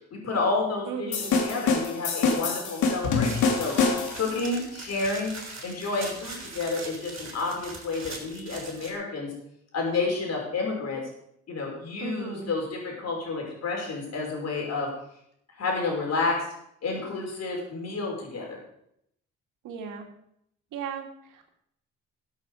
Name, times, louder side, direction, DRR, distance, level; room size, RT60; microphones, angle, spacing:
voice 1, 0.1-1.2 1.4-3.7 4.1-5.3 5.6-9.3 9.7-11.0 11.5-14.9 15.6-16.5 16.8-18.6, left 3 dB, 60° left, -1 dB, 5.5 m, -30 dB
voice 2, 0.9-1.4 12.0-12.5 19.6-20.1 20.7-21.5, right 6 dB, 85° right, 4 dB, 2.2 m, -36 dB
sound 1, 1.1-4.3, left 4 dB, 75° left, 2.5 m, -25 dB
sound 2, 3.2-8.9, right 3 dB, 45° right, 6.0 m, -41 dB
15.0 x 8.5 x 4.9 m, 0.74 s
cardioid pair, 90°, 30 cm